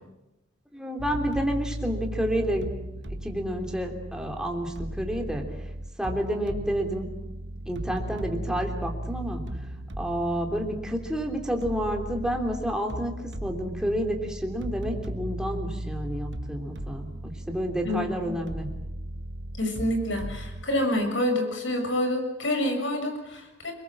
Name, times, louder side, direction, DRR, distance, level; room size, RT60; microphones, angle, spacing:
voice 1, 0.7-2.7 3.2-5.4 6.0-7.1 7.7-9.4 10.0-13.1 13.4-18.7, equal, 5° right, 2 dB, 3.2 m, -29 dB
sound 1, 1.0-20.7, right 1 dB, 75° right, 1.5 m, -36 dB
voice 2, 17.8-18.3 19.6-23.7, left 1 dB, 90° left, 4 dB, 6.7 m, -27 dB
28.5 x 21.5 x 7.4 m, 0.93 s
head